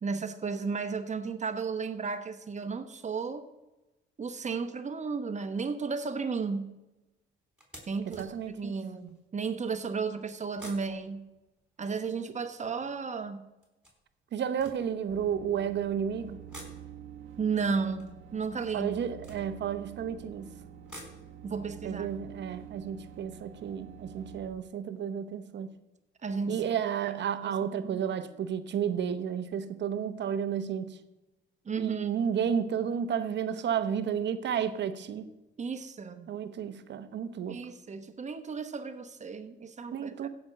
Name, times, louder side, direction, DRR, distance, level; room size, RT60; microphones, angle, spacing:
voice 1, 0.0-3.5 4.2-6.7 7.9-11.2 11.8-13.4 17.4-18.9 21.4-22.1 26.2-26.7 27.4-28.0 31.6-32.1 35.6-36.3 37.5-40.3, right 5 dB, 35° right, 1.1 m, -34 dB
sound 1, 7.6-9.3 10.4-12.7 13.6-15.6 16.3-20.1 20.6-23.6 23.9-24.0 24.3-24.4, equal, 5° right, 3.9 m, -53 dB
voice 2, 8.1-8.8 14.3-16.4 18.7-20.5 21.8-25.7 26.5-31.0 31.8-35.3 36.3-37.6 39.9-40.3, right 8 dB, 65° right, 0.9 m, -32 dB
sound 2, 15.1-24.5, right 10 dB, 85° right, 1.1 m, -47 dB
15.5 x 5.3 x 6.4 m
cardioid pair, 90°, 20 cm